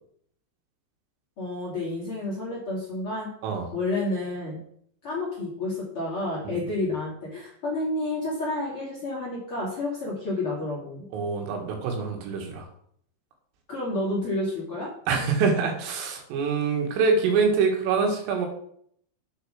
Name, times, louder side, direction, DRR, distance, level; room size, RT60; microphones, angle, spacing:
voice 1, 1.4-3.3 3.7-4.6 5.0-11.1 13.7-14.9, left 2 dB, 35° left, -5 dB, 2.7 m, -30 dB
voice 2, 11.1-12.7 15.1-18.5, right 5 dB, 80° right, 2 dB, 4.5 m, -25 dB
8.6 x 6.9 x 6.4 m, 0.66 s
omnidirectional pair, 5.8 m